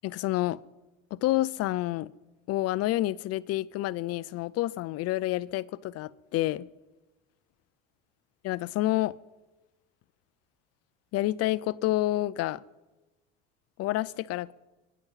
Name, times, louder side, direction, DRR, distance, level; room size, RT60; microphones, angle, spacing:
voice 1, 0.0-0.6 1.1-2.1 2.5-6.7 8.4-9.2 11.1-12.6 13.8-14.5, left 16 dB, 55° left, 0.5 m, -28 dB
22.5 x 10.5 x 5.7 m
cardioid pair, 115°, 30 cm